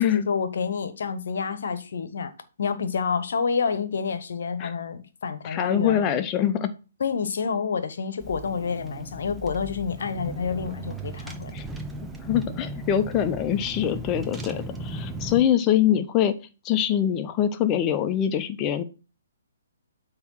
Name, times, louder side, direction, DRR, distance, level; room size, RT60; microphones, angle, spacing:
voice 1, 0.0-2.3 2.6-6.2 7.0-11.6, left 6 dB, 55° left, 1.1 m, -28 dB
voice 2, 5.4-6.7 11.5-11.7 12.2-16.3 16.6-18.8, left 10 dB, 25° left, 0.9 m, -24 dB
Car / Engine, 8.2-15.4, right 2 dB, 5° right, 0.8 m, -37 dB
8.1 x 3.2 x 6.4 m
figure-of-eight pair, 130°, 0 cm